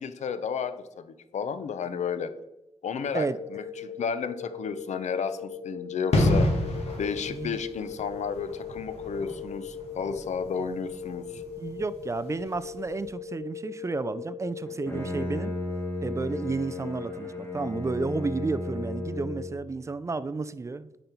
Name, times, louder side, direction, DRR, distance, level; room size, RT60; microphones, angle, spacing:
voice 1, 0.0-2.3 2.8-6.5 7.0-11.4, left 6 dB, 90° left, 11 dB, 0.6 m, -32 dB
sound 1, 3.1-19.6, left 6 dB, 50° left, 0.6 m, -40 dB
sound 2, 6.1-12.6 12.9-13.1, left 1 dB, 70° left, 1.9 m, -30 dB
voice 2, 7.3-7.6 11.6-15.5 16.0-20.9, right 3 dB, 25° right, 14 dB, 0.4 m, -32 dB
Bowed string instrument, 14.7-19.7, left 1 dB, 20° left, 1.8 m, -35 dB
9.0 x 5.4 x 4.4 m, 0.98 s
wide cardioid pair, 135°, 12 cm